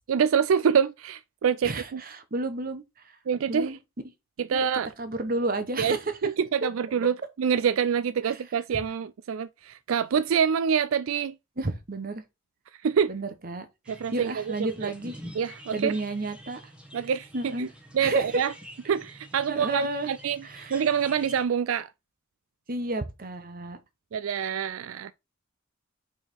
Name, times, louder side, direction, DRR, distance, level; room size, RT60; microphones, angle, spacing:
voice 1, 0.1-2.0 3.3-3.7 4.4-4.9 5.8-6.0 6.2-11.3 12.8-13.1 13.9-14.9 15.4-16.0 16.9-17.7 17.9-18.5 18.9-20.4 20.7-21.9 24.1-25.1, right 7 dB, 80° right, 0.4 m, -26 dB
voice 2, 1.6-2.8 3.5-3.8 4.5-4.6 5.0-6.1 6.6-6.7 8.2-8.4 8.7-8.8 11.6-12.2 13.1-15.2 15.7-16.6 17.3-17.7 18.0-18.4 19.5-20.1 20.4-20.8 22.7-23.8, right 2 dB, 45° right, 1.1 m, -31 dB
sound 1, 13.8-21.4, equal, 5° right, 1.5 m, -47 dB
5.5 x 4.8 x 4.6 m
head